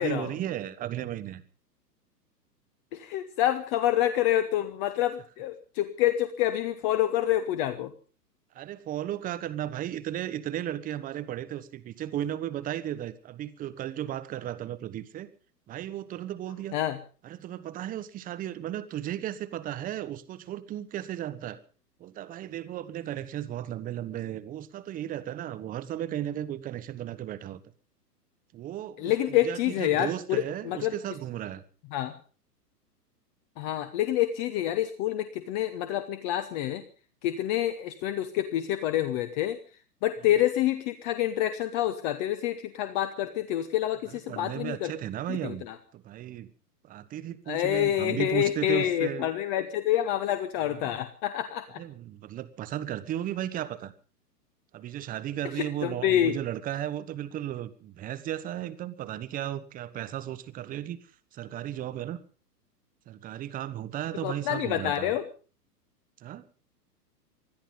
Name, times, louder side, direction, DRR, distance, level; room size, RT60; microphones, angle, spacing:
voice 1, 0.0-1.4 8.5-15.3 15.7-16.8 17.2-21.6 22.0-27.6 28.5-31.6 44.1-45.7 45.9-46.5 46.8-49.3 50.6-51.0 51.8-53.9 54.7-61.0 61.3-62.2 63.1-65.1 66.2-66.5, right 11 dB, 15° right, 14 dB, 1.1 m, -35 dB
voice 2, 2.9-7.9 16.7-17.0 29.0-30.9 31.9-32.1 33.6-36.8 37.2-39.6 40.0-44.9 45.3-45.7 47.5-51.8 55.6-56.4 64.2-65.2, left 12 dB, 30° left, 10 dB, 1.1 m, -27 dB
20.5 x 13.0 x 5.4 m, 0.39 s
figure-of-eight pair, 105°, 48 cm